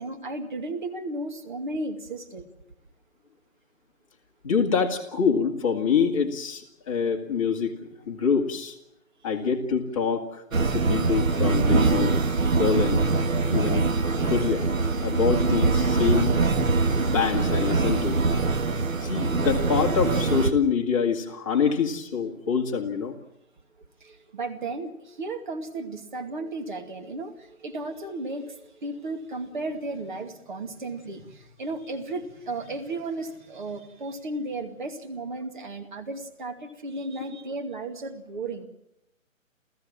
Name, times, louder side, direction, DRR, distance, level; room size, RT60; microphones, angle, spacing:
voice 1, 0.0-2.5 24.0-38.7, right 2 dB, 35° right, 4 dB, 2.4 m, -34 dB
voice 2, 4.4-7.7 8.1-8.8 9.2-10.4 10.7-12.2 12.6-13.1 13.5-13.9 14.3-14.7 15.0-16.3 17.1-18.4 19.0-23.2, left 6 dB, 25° left, 1 dB, 2.1 m, -25 dB
sound 1, 10.5-20.5, right 3 dB, 80° right, 2.1 m, -23 dB
29.5 x 15.5 x 7.5 m, 0.86 s
hypercardioid pair, 160°, 40 cm